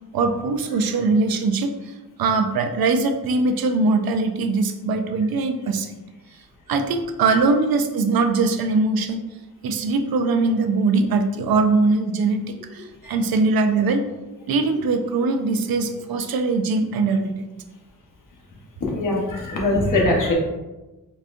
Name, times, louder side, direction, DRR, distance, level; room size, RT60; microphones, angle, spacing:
voice 1, 0.1-1.7 2.2-5.9 6.7-9.2 9.6-14.0 14.5-17.5, right 3 dB, 90° right, 7 dB, 0.5 m, -21 dB
voice 2, 18.9-20.3, left 2 dB, 60° left, -2 dB, 1.0 m, -21 dB
4.0 x 3.5 x 2.5 m, 1.1 s
wide cardioid pair, 160°, 35 cm